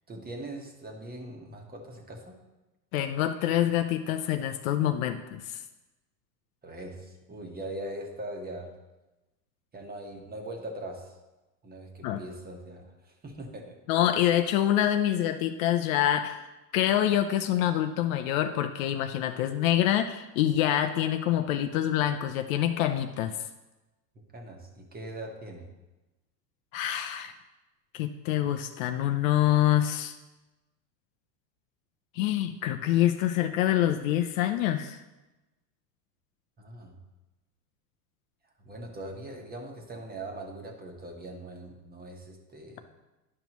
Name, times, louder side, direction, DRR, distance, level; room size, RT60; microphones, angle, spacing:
voice 1, 0.1-2.4 6.6-8.7 9.7-11.2 11.6-13.8 24.1-25.7 36.6-37.0 38.6-42.8, right 1 dB, 20° right, 2 dB, 1.3 m, -41 dB
voice 2, 2.9-5.6 12.0-12.2 13.9-16.4 16.7-23.3 26.7-27.3 27.9-30.1 32.1-35.0, left 12 dB, 55° left, 7 dB, 0.6 m, -26 dB
11.0 x 5.3 x 3.0 m, 1.1 s
hypercardioid pair, 105°, 49 cm